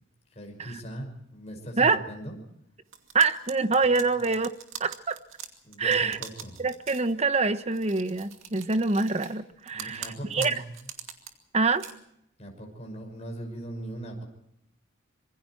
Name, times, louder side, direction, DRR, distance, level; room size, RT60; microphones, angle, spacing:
voice 1, 0.3-2.4 5.6-6.6 9.7-10.6 12.4-14.2, right 1 dB, 35° left, 2 dB, 5.8 m, -39 dB
sound 1, 2.9-7.1 7.7-9.4 9.7-11.3 11.7-11.9, right 9 dB, 85° right, 2.4 m, -42 dB
voice 2, 3.1-4.5 4.8-5.2 5.8-6.2 6.6-10.5 11.5-11.8, right 4 dB, 35° right, 11 dB, 1.0 m, -25 dB
26.0 x 23.0 x 4.6 m, 0.77 s
head